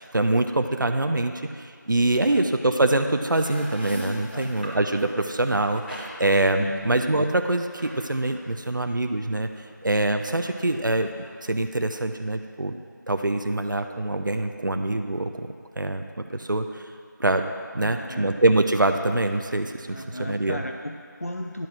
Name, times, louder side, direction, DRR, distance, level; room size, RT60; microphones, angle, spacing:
voice 1, 0.0-9.5 9.8-11.1 11.4-12.8 13.1-15.5 15.8-16.8 17.2-17.5 17.7-20.6, right 2 dB, 75° right, 6 dB, 0.6 m, -24 dB
voice 2, 2.1-2.5 4.1-4.8 6.6-6.9 17.8-18.4 19.9-21.7, left 1 dB, 45° left, 3 dB, 0.5 m, -36 dB
sound 1, 3.3-5.3, equal, 30° left, 1.0 m, -39 dB
sound 2, 3.7-11.3, equal, 30° right, 2.0 m, -46 dB
10.5 x 4.7 x 7.4 m, 2.1 s
figure-of-eight pair, 180°, 11 cm